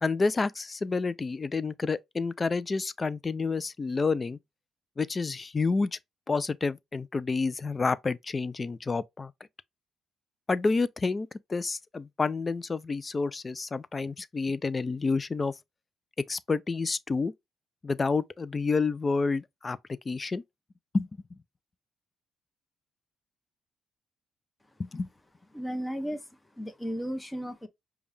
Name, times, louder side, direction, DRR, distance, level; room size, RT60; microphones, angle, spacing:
voice 1, 0.0-4.4 5.0-6.0 6.3-9.3 10.5-15.5 16.3-17.3 17.8-19.8 20.1-20.4 20.9-21.4 24.8-25.1, left 4 dB, 30° left, 0.4 m, -29 dB
voice 2, 25.5-27.7, equal, 10° left, 0.9 m, -35 dB
5.2 x 2.3 x 3.3 m
cardioid pair, 90°, 0 cm